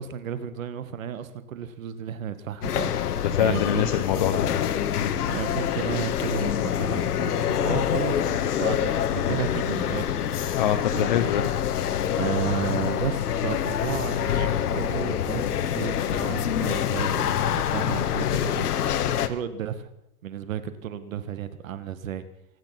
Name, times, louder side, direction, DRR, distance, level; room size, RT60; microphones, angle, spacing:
voice 1, 0.0-3.9 5.3-10.6 10.9-11.3 12.1-19.0 19.3-19.9 20.2-22.3, right 9 dB, 60° right, 12 dB, 1.7 m, -33 dB
sound 1, 2.6-19.3, left 10 dB, 80° left, 1.5 m, -26 dB
voice 2, 3.2-5.2 10.5-11.5, left 9 dB, 30° left, 5 dB, 0.8 m, -25 dB
24.0 x 9.6 x 5.9 m, 0.80 s
supercardioid pair, 180°, 45 cm